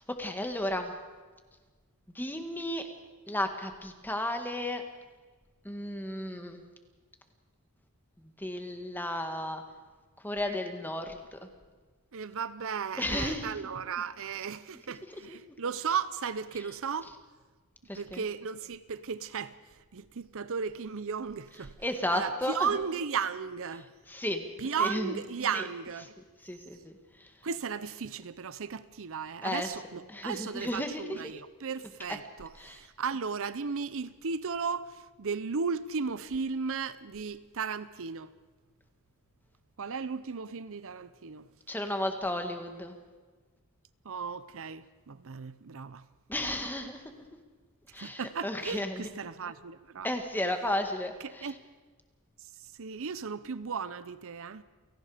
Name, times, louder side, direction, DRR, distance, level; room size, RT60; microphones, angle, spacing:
voice 1, 0.1-0.9 2.2-2.8 3.3-4.8 5.6-6.6 8.4-9.6 10.2-11.4 13.0-13.5 15.3-15.4 17.9-18.2 21.8-22.6 24.1-24.4 24.8-25.1 25.5-25.6 26.4-26.9 29.4-29.7 30.1-31.0 32.6-32.8 41.7-43.0 46.3-47.2 47.9-49.1 50.0-51.5, left 1 dB, 10° left, 1.9 m, -33 dB
voice 2, 12.1-17.1 17.9-23.9 24.6-26.1 26.4-26.5 27.4-38.3 39.8-41.5 44.0-46.1 48.0-50.1 51.2-51.5 52.4-54.6, right 6 dB, 65° right, 0.7 m, -35 dB
29.5 x 18.0 x 5.1 m
head